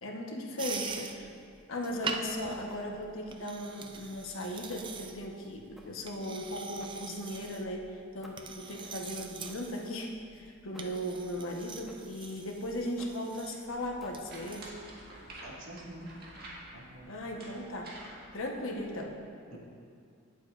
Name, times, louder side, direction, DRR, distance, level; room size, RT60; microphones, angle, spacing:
voice 1, 0.0-1.3 1.7-14.7 17.1-17.9 18.3-19.2, left 1 dB, 75° left, 0 dB, 1.1 m, -37 dB
sound 1, 0.6-14.7, right 5 dB, 25° right, 0.4 m, -44 dB
sound 2, 4.7-5.1 5.8-6.1 6.8-7.5 8.2-8.6 9.4-9.8 10.7-11.1 11.9-12.2 13.0-13.3 14.0-14.4, equal, ahead, 0.9 m, -56 dB
voice 2, 8.6-9.0 15.4-16.1 16.7-17.1 19.5-19.6, right 1 dB, 75° right, -4 dB, 1.9 m, -48 dB
sound 3, 13.7-19.0, right 1 dB, 45° right, 1.8 m, -50 dB
17.0 x 7.5 x 2.5 m, 2.3 s
head